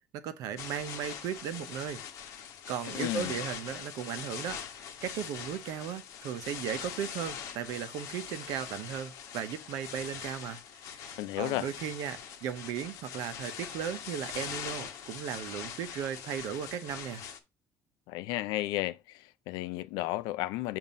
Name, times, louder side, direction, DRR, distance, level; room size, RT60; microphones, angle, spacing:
voice 1, 0.1-2.0 2.7-10.6 11.0-17.2, right 9 dB, 60° right, 0.7 m, -36 dB
sound 1, 0.6-17.4, left 8 dB, 50° left, 1.0 m, -42 dB
voice 2, 2.9-3.4 11.2-11.7 18.1-20.8, left 17 dB, 85° left, 0.4 m, -33 dB
7.2 x 2.6 x 5.2 m
cardioid pair, 175°, 7 cm